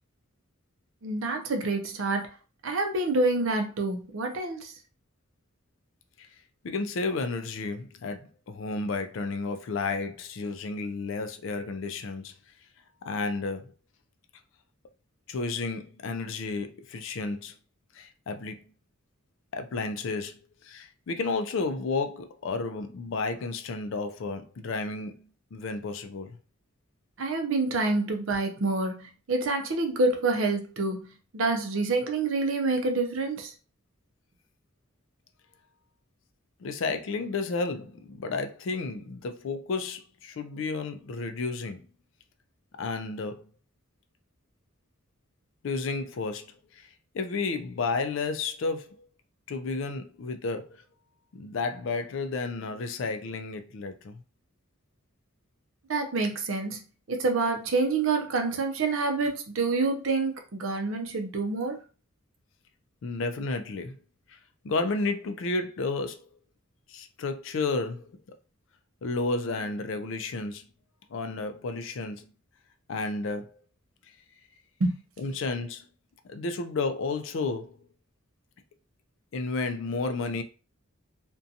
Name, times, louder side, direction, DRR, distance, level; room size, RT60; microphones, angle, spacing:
voice 1, 1.0-2.3 2.6-4.7 27.2-31.1 31.3-33.5 55.9-56.8 57.1-61.8 74.8-74.9, right 3 dB, 70° right, 0.6 m, -27 dB
voice 2, 6.6-12.3 13.0-13.7 15.3-17.5 17.9-18.7 19.5-26.4 36.6-41.9 42.8-43.5 45.6-46.9 47.1-49.1 49.5-50.8 51.3-54.2 63.0-64.0 64.3-64.4 64.6-66.3 66.9-68.1 69.0-70.7 71.1-72.3 72.9-73.6 75.2-75.8 76.3-77.7 79.3-80.4, left 3 dB, 60° left, 0.4 m, -32 dB
2.5 x 2.2 x 2.6 m
head